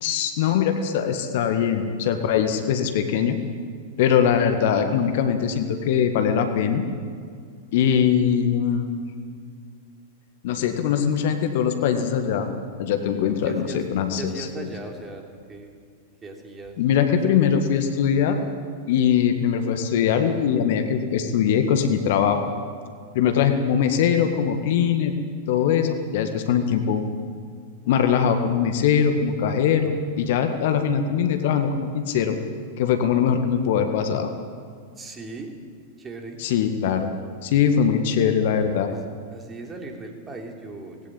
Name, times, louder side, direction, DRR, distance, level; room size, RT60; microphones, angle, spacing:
voice 1, 0.0-3.4 4.0-6.8 7.7-9.0 10.4-12.5 12.8-14.7 16.8-18.4 18.9-22.5 23.1-25.1 25.5-27.0 27.9-32.4 32.8-34.3 36.4-37.1 37.4-38.9, left 8 dB, 55° left, 7 dB, 1.8 m, -22 dB
voice 2, 13.3-13.8 14.2-15.7 16.2-16.8 17.1-17.7 35.0-35.5 36.0-36.4 38.5-41.0, right 3 dB, 20° right, 3 dB, 3.4 m, -38 dB
19.5 x 16.5 x 9.1 m, 2.1 s
figure-of-eight pair, 95°, 0 cm